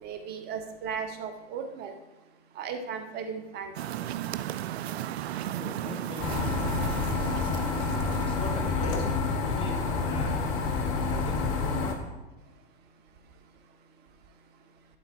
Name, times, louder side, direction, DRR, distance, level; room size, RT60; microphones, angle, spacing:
voice 1, 0.0-1.9 2.6-3.7, right 6 dB, 30° right, 7 dB, 1.0 m, -36 dB
sound 1, 3.7-8.7, right 12 dB, 65° right, 0.5 m, -35 dB
voice 2, 5.6-7.3 8.2-10.3 11.0-12.1, left 3 dB, 15° left, 3 dB, 1.3 m, -42 dB
sound 2, 6.2-11.9, left 4 dB, 35° left, 1.2 m, -28 dB
11.5 x 3.9 x 4.4 m, 1.1 s
hypercardioid pair, 115°, 34 cm